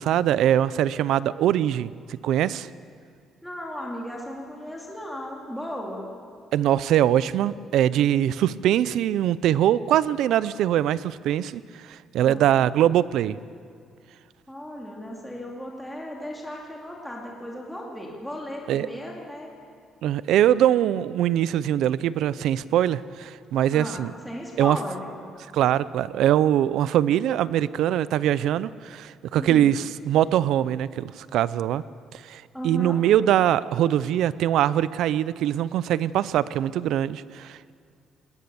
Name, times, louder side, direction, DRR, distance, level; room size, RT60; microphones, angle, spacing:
voice 1, 0.0-2.7 6.5-11.6 11.9-13.4 18.7-18.9 20.0-24.1 24.6-24.8 25.5-31.8 32.1-37.7, right 11 dB, 70° right, 18 dB, 0.6 m, -22 dB
voice 2, 3.4-6.1 12.2-12.5 14.5-19.5 23.7-25.1 29.3-29.7 32.5-33.1, left 1 dB, 5° left, -2 dB, 2.7 m, -36 dB
20.0 x 19.0 x 7.0 m, 2.4 s
cardioid pair, 155°, 0 cm